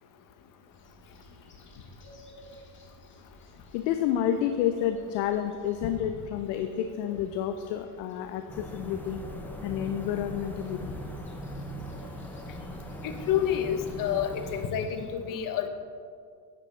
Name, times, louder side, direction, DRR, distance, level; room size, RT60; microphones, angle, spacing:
sound 1, 0.7-15.1, equal, 25° left, 1.5 m, -54 dB
voice 1, 3.7-9.2 9.6-10.9, left 10 dB, 65° left, 7 dB, 0.7 m, -29 dB
sound 2, 8.5-14.7, equal, 5° left, 0.3 m, -40 dB
voice 2, 13.0-15.7, left 9 dB, 40° left, 7 dB, 0.9 m, -29 dB
9.3 x 8.3 x 3.3 m, 2.1 s
supercardioid pair, 115°, 49 cm